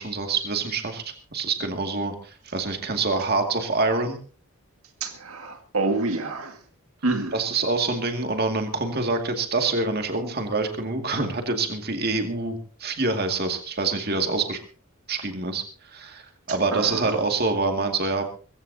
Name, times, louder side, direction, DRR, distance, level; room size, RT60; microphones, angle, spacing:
voice 1, 0.0-4.2 7.3-14.6 15.1-15.6 15.9-18.2, right 3 dB, 45° right, 2.3 m, -26 dB
voice 2, 5.0-6.6 7.0-7.4 16.5-17.2, right 3 dB, 75° right, 2.0 m, -28 dB
22.0 x 16.0 x 2.8 m
head